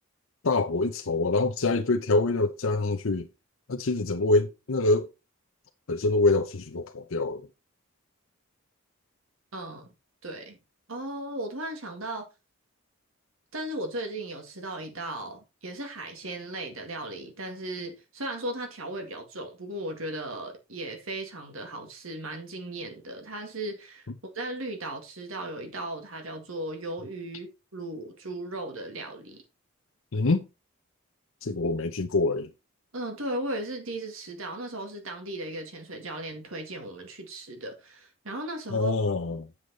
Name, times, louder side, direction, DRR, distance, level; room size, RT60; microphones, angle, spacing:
voice 1, 0.4-3.3 3.7-5.1 5.9-7.5 30.1-30.5 31.4-32.5 38.7-39.5, left 3 dB, 75° left, 0.8 m, -25 dB
voice 2, 9.5-9.9 10.2-10.6 10.9-12.3 13.5-24.1 24.3-29.4 32.9-38.9, right 1 dB, 75° right, 2.1 m, -36 dB
8.1 x 7.1 x 4.1 m
head